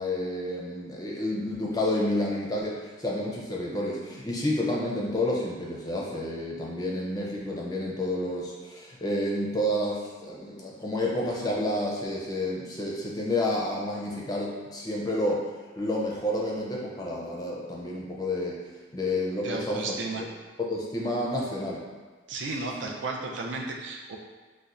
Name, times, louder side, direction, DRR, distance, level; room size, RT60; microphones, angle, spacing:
voice 1, 0.0-15.5 15.8-18.6 18.9-20.2 20.6-21.8 22.8-22.9, left 1 dB, 20° left, -3 dB, 0.4 m, -30 dB
voice 2, 19.4-20.2 22.3-24.2, right 3 dB, 85° right, 0 dB, 0.4 m, -33 dB
4.1 x 2.1 x 2.4 m, 1.4 s
head